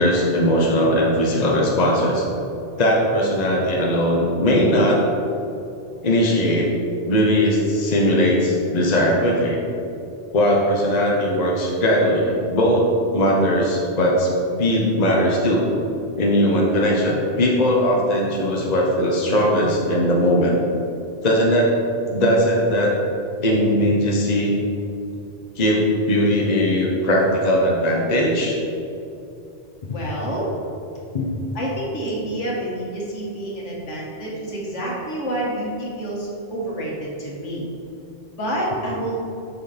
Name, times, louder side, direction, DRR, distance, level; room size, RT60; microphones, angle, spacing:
voice 1, 0.0-2.3 2.8-5.0 6.0-6.7 7.1-9.6 10.3-14.3 14.6-15.7 16.1-20.5 21.2-21.7 22.1-22.9 23.4-24.6 25.6-28.6 29.9-30.0 31.1-31.3, equal, 35° left, -2 dB, 1.1 m, -19 dB
voice 2, 29.9-30.5 31.5-37.6 38.4-39.2, right 1 dB, 80° left, -4 dB, 2.0 m, -28 dB
8.3 x 6.0 x 4.3 m, 2.6 s
omnidirectional pair, 1.2 m